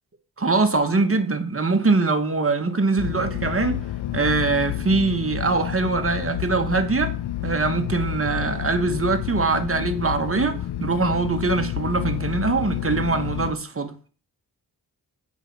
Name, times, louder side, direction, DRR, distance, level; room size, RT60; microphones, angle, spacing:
voice 1, 0.4-3.8 4.1-7.1 7.4-13.9, right 3 dB, 35° right, 1.4 m, -23 dB
sound 1, 3.0-13.5, left 13 dB, 80° left, 0.6 m, -29 dB
8.1 x 5.3 x 5.9 m
cardioid pair, 70°, 40 cm